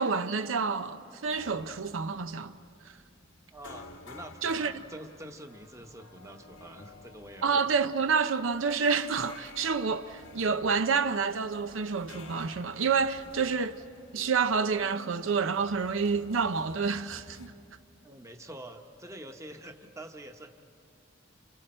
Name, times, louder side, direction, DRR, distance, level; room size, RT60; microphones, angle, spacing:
voice 1, 0.0-2.5 4.4-4.8 7.4-13.8 14.1-17.5, right 5 dB, 90° right, 0.6 m, -28 dB
sound 1, 1.3-17.5, left 2 dB, 85° left, 1.5 m, -52 dB
voice 2, 3.5-7.7 18.0-20.5, right 1 dB, 15° right, 1.0 m, -46 dB
29.5 x 28.0 x 4.4 m
head